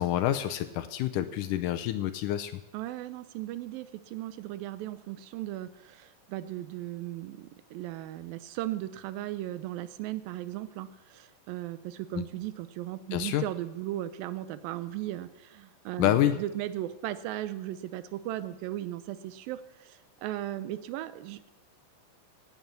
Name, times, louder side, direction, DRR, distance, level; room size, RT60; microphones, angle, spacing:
voice 1, 0.0-2.6 12.1-12.2 13.1-13.4 16.0-16.4, left 13 dB, 75° left, 9 dB, 2.1 m, -27 dB
voice 2, 2.7-21.5, right 14 dB, 85° right, 14 dB, 2.5 m, -37 dB
16.5 x 9.3 x 6.8 m, 0.98 s
omnidirectional pair, 4.0 m